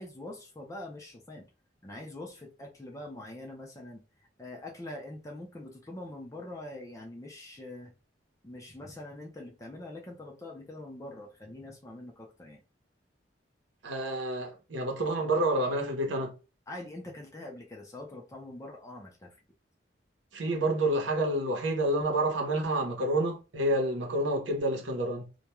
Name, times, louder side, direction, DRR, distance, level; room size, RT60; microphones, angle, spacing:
voice 1, 0.0-1.5 1.8-4.0 4.4-7.9 8.4-12.6 16.7-19.4, left 1 dB, 15° left, 0.5 m, -44 dB
voice 2, 13.8-16.4 20.3-25.3, right 1 dB, 85° right, 0.8 m, -29 dB
2.3 x 2.2 x 2.9 m
head